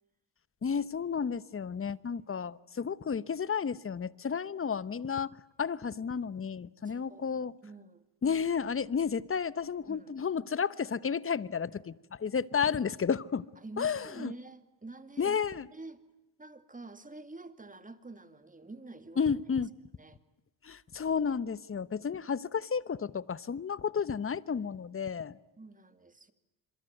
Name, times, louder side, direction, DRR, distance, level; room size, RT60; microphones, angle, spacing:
voice 1, 0.6-7.5 8.2-13.5 13.8-14.3 15.2-15.7 19.2-19.7 20.6-25.4, left 6 dB, 30° left, 18 dB, 1.0 m, -32 dB
voice 2, 6.8-7.3 7.6-8.0 9.9-10.1 13.6-16.0 16.4-19.3 20.0-20.2 25.6-26.3, right 3 dB, 15° right, 11 dB, 2.4 m, -48 dB
27.0 x 23.0 x 9.3 m, 0.98 s
supercardioid pair, 70°, 45 cm